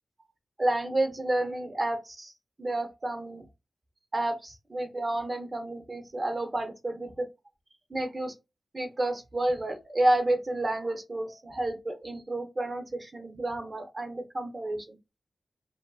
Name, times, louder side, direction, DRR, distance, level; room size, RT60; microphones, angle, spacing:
voice 1, 0.6-2.3 2.6-3.4 4.1-7.3 7.9-8.3 8.7-15.0, right 1 dB, 30° right, 0.6 m, -30 dB
2.6 x 2.5 x 2.3 m
wide cardioid pair, 85°, 0 cm